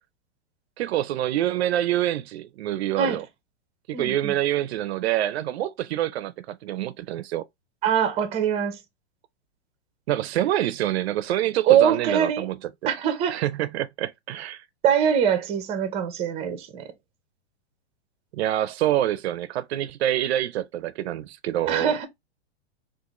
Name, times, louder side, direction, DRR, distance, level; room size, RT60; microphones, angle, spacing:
voice 1, 0.8-3.2 3.9-7.4 10.1-12.6 13.3-14.6 18.3-21.9, right 13 dB, 70° right, 0.5 m, -26 dB
voice 2, 3.9-4.3 7.8-8.8 11.6-12.5 12.9-13.4 14.8-16.9 21.7-22.1, right 8 dB, 20° right, 0.6 m, -23 dB
3.7 x 2.5 x 2.9 m
hypercardioid pair, 145°, 33 cm